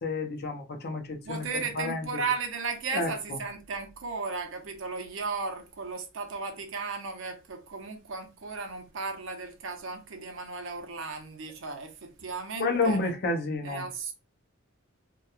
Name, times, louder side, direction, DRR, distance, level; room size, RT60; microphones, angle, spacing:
voice 1, 0.0-1.4 1.8-2.1 2.9-3.1 12.6-13.8, left 3 dB, 50° left, 0.5 m, -29 dB
voice 2, 1.1-13.0 13.6-14.1, right 4 dB, 65° right, 0.6 m, -35 dB
2.8 x 2.2 x 2.3 m
head